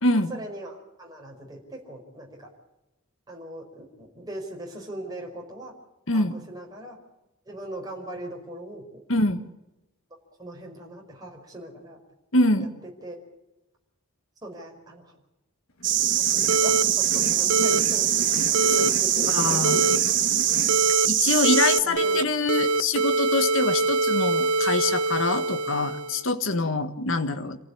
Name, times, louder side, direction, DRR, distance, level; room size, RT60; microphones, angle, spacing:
voice 1, 0.3-2.5 3.3-5.8 6.1-7.0 7.5-9.0 10.4-12.0 13.0-13.2 14.4-15.1 16.2-18.3 18.6-20.0 21.8-22.3, right 1 dB, 20° right, 0 dB, 5.2 m, -39 dB
voice 2, 9.1-9.4 12.3-12.7 19.3-19.8 21.1-27.6, left 2 dB, 65° left, 8 dB, 1.5 m, -24 dB
sound 1, 15.8-21.0, left 2 dB, 80° left, 2.4 m, -35 dB
sound 2, 15.8-21.8, right 12 dB, 55° right, 1.5 m, -23 dB
sound 3, 16.5-16.8 17.5-17.8 18.5-18.9 19.6-20.0 20.7-21.1 21.4-22.2 22.5-26.2, right 3 dB, 90° right, 0.9 m, -24 dB
27.5 x 16.0 x 8.7 m, 0.97 s
head